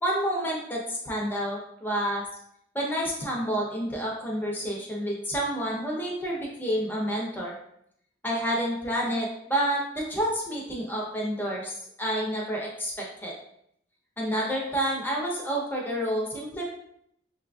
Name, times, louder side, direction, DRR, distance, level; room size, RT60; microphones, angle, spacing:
voice 1, 0.0-2.2 2.7-7.5 8.2-11.7 12.0-13.3 14.2-16.7, equal, 10° left, -3 dB, 0.7 m, -29 dB
5.5 x 2.5 x 2.3 m, 0.74 s
head